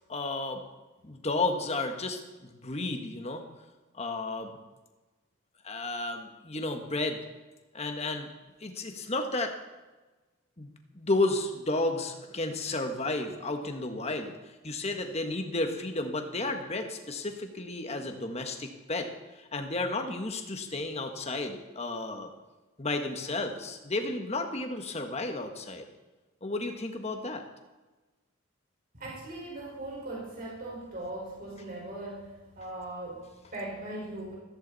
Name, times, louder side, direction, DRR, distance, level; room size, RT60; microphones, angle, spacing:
voice 1, 0.1-0.6 1.0-3.4 3.9-4.5 5.6-7.2 7.7-8.3 8.6-9.5 10.6-14.3 14.6-19.1 19.4-22.3 22.8-25.9 26.4-27.4, left 2 dB, 30° left, 5 dB, 1.5 m, -32 dB
voice 2, 28.9-34.4, right 1 dB, 40° right, -4 dB, 4.9 m, -39 dB
15.0 x 14.0 x 4.2 m, 1.2 s
head